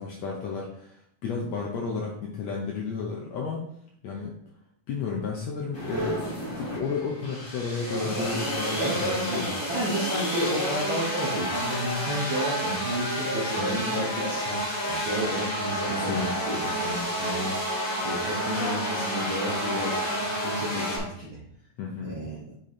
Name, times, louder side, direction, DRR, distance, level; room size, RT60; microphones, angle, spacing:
voice 1, 0.0-3.6 4.0-4.4 4.9-9.9 13.6-14.0 15.9-16.3 16.6-17.1 21.8-22.2, left 5 dB, 75° left, -2 dB, 1.6 m, -33 dB
sound 1, 5.7-21.0, equal, 35° left, 0.8 m, -30 dB
voice 2, 8.0-9.0 9.3-14.6 14.8-16.7 17.2-17.5 18.0-20.1 20.4-21.4 22.0-22.4, right 1 dB, 55° right, -6 dB, 1.4 m, -32 dB
6.7 x 3.7 x 4.2 m, 0.69 s
omnidirectional pair, 3.9 m